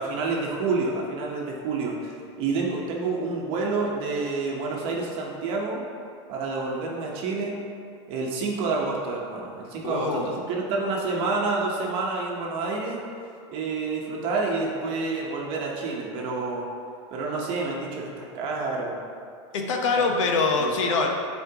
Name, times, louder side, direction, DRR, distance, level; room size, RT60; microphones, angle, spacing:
voice 1, 0.0-2.1 2.4-5.8 6.3-7.5 8.1-13.0 13.5-16.7 17.1-19.0 20.0-20.1 20.5-20.7, right 3 dB, 35° right, -2 dB, 1.0 m, -28 dB
voice 2, 9.8-10.3 19.5-21.1, left 4 dB, 85° left, 2 dB, 1.0 m, -24 dB
10.5 x 4.4 x 2.9 m, 2.4 s
supercardioid pair, 165°, 16 cm